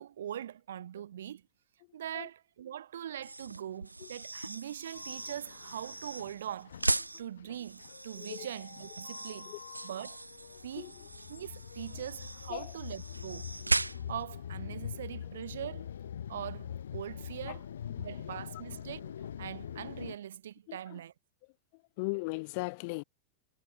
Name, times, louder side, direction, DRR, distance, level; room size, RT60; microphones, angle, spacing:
voice 1, 0.0-1.5 1.9-6.9 7.2-9.5 9.8-10.2 10.6-10.9 11.3-13.5 14.1-15.9 16.3-17.6 18.0-21.1, right 10 dB, 60° right, 7.6 m, -42 dB
sound 1, 3.1-14.3, right 2 dB, 85° right, 0.4 m, -38 dB
sound 2, 4.9-20.1, left 9 dB, 65° left, 1.6 m, -44 dB
voice 2, 8.1-8.5 9.5-9.6 10.7-11.1 12.5-12.8 17.5-17.6 17.9-18.4 20.7-21.0 21.7-23.0, left 28 dB, 45° left, 3.1 m, -39 dB
figure-of-eight pair, 90°, 0 cm